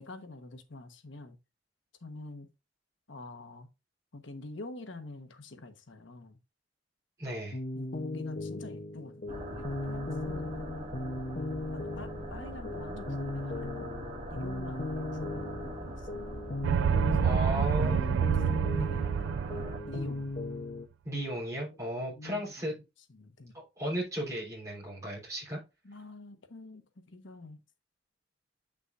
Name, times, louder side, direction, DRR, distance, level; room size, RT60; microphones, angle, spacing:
voice 1, 0.0-1.4 2.0-2.5 3.1-3.7 4.1-6.4 7.7-10.9 11.3-13.9 14.3-16.5 17.0-17.2 18.1-20.4 21.7-22.7 23.1-23.6 25.8-27.6, left 2 dB, 80° left, 1.2 m, -47 dB
voice 2, 7.2-7.6 17.2-18.2 21.0-22.8 23.5-25.6, equal, 15° right, 3.6 m, -35 dB
sound 1, 7.5-20.9, left 2 dB, 50° left, 0.8 m, -37 dB
sound 2, 9.3-19.8, right 1 dB, 35° right, 1.4 m, -43 dB
sound 3, 16.6-20.2, right 7 dB, 75° right, 0.3 m, -28 dB
8.0 x 6.0 x 2.5 m
head